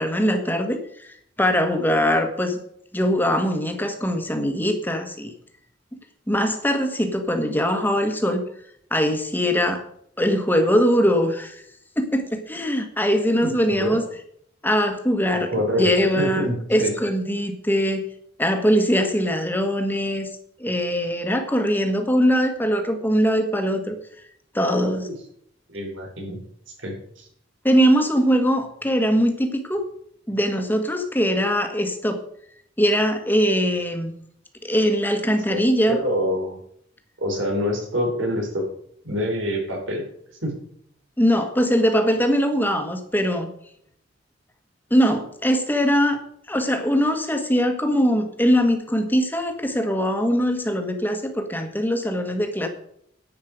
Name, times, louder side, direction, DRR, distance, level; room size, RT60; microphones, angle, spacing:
voice 1, 0.0-2.6 2.9-5.3 6.3-8.4 8.9-9.8 10.2-11.6 12.0-14.0 14.6-15.5 15.8-18.0 18.4-20.3 20.6-24.0 24.5-25.1 27.6-29.8 30.3-32.2 32.8-34.1 34.6-36.0 41.2-43.5 44.9-46.2 46.5-52.7, equal, 10° left, 5 dB, 1.5 m, -21 dB
voice 2, 13.4-14.0 15.3-16.9 25.0-25.1 25.7-26.4 26.8-27.3 35.5-36.6 37.2-38.7 39.0-40.1 40.4-40.6, equal, 85° right, 1 dB, 4.4 m, -26 dB
10.5 x 9.5 x 5.1 m, 0.67 s
head